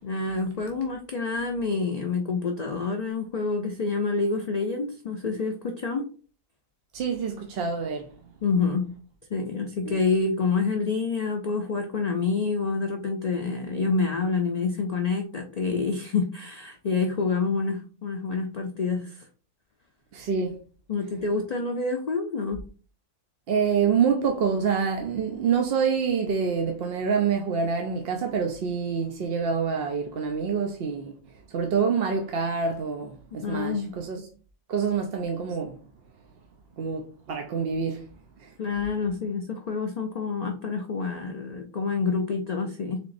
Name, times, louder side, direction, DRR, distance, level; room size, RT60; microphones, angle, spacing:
voice 1, 0.0-6.1 8.4-8.8 9.3-19.2 20.9-22.6 33.4-33.9 38.6-43.0, left 4 dB, 70° left, 0.4 m, -27 dB
voice 2, 6.9-8.1 9.8-10.0 20.1-20.6 23.5-31.1 31.5-34.2 34.7-35.8 36.8-38.0 38.4-38.5, right 6 dB, 60° right, 0.7 m, -26 dB
3.8 x 3.4 x 2.5 m
omnidirectional pair, 1.3 m